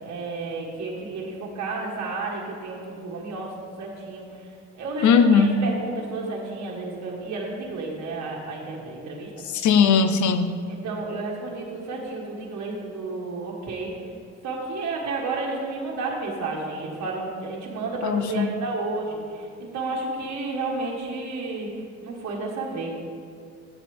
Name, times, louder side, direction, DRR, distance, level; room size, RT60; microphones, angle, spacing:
voice 1, 0.0-4.5 4.8-9.3 10.7-13.9 14.4-21.7 22.0-22.9, right 3 dB, 65° right, -3 dB, 1.6 m, -32 dB
voice 2, 5.0-5.6 9.4-10.5 18.0-18.5, left 6 dB, 75° left, 10 dB, 0.7 m, -19 dB
9.8 x 7.4 x 3.5 m, 2.3 s
cardioid pair, 90°, 30 cm